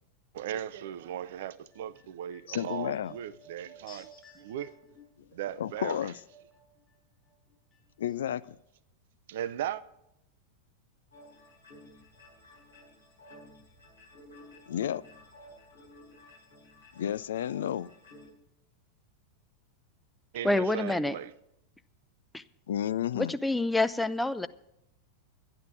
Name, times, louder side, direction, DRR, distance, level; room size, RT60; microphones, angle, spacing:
voice 1, 0.3-4.1 4.4-4.7 5.3-6.0 9.3-9.8 20.3-21.3, right 11 dB, 55° right, 0.5 m, -37 dB
sound 1, 1.7-7.0 7.2-8.2 8.4-8.5, equal, 25° left, 5.1 m, -56 dB
voice 2, 2.5-3.2 5.6-6.2 8.0-8.6 14.7-15.0 16.9-17.9 22.7-23.3, left 10 dB, 60° left, 0.3 m, -31 dB
sound 2, 11.1-18.3, left 1 dB, 80° left, 5.6 m, -54 dB
voice 3, 20.4-21.2 22.3-22.4 23.1-24.5, left 2 dB, 5° left, 0.5 m, -27 dB
11.5 x 10.0 x 6.1 m
figure-of-eight pair, 90°, 0 cm